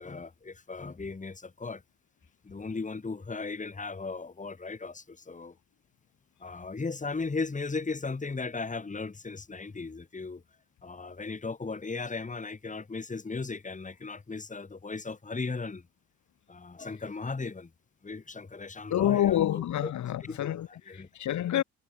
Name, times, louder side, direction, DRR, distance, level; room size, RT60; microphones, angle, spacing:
voice 1, 0.0-1.8 2.4-5.5 6.4-10.4 10.8-15.8 16.5-17.7 18.0-19.9 20.3-21.1, left 4 dB, 25° left, 4.6 m, -37 dB
voice 2, 18.9-21.6, left 12 dB, 70° left, 3.3 m, -28 dB
cardioid pair, 90°, 30 cm